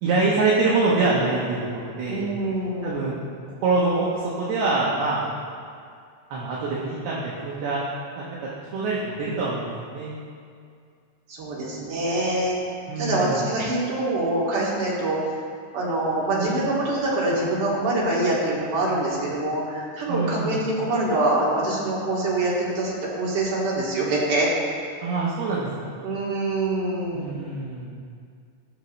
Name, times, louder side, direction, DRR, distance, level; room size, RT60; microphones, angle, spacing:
voice 1, 0.0-2.3 2.8-3.1 3.6-5.3 6.3-7.8 8.2-8.3 8.6-10.1 12.9-13.5 16.4-16.6 20.1-20.6 25.0-25.9 27.1-28.0, right 3 dB, 70° right, -6 dB, 3.0 m, -25 dB
voice 2, 2.1-3.0 11.3-12.6 13.0-15.2 15.7-24.5 26.0-27.4, right 2 dB, 55° right, -6 dB, 3.5 m, -25 dB
18.5 x 6.6 x 3.1 m, 2.3 s
omnidirectional pair, 4.9 m